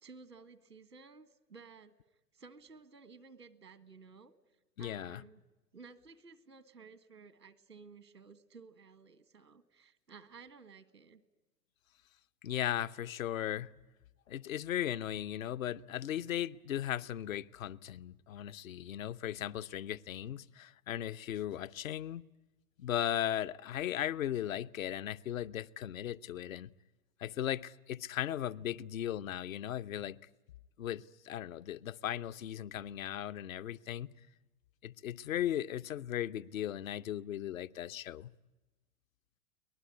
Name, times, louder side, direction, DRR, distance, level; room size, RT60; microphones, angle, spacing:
voice 1, 0.0-1.9 2.3-4.3 4.8-5.4 5.7-11.2, right 4 dB, 80° right, 1.8 m, -55 dB
voice 2, 4.8-5.2 12.4-13.7 14.3-22.2 22.8-26.7 27.2-30.2 30.8-34.1 34.8-38.3, left 11 dB, 55° left, 0.8 m, -37 dB
23.5 x 19.5 x 9.6 m
figure-of-eight pair, 100°, 47 cm